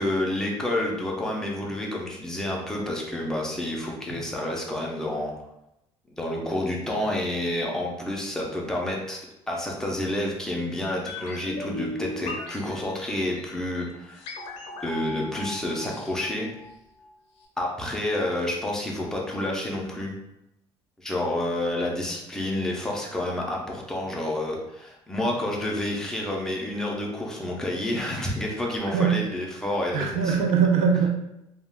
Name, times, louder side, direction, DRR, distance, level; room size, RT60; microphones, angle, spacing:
voice 1, 0.0-5.3 6.1-14.3 14.8-16.5 17.6-20.1 21.0-30.4, left 1 dB, 5° left, -2 dB, 0.4 m, -29 dB
sound 1, 11.1-17.1 17.4-17.5, left 2 dB, 60° left, 0.5 m, -38 dB
voice 2, 28.9-29.2 29.9-31.1, right 6 dB, 75° right, 3 dB, 0.4 m, -21 dB
2.2 x 2.2 x 3.3 m, 0.86 s
cardioid pair, 180°, 11 cm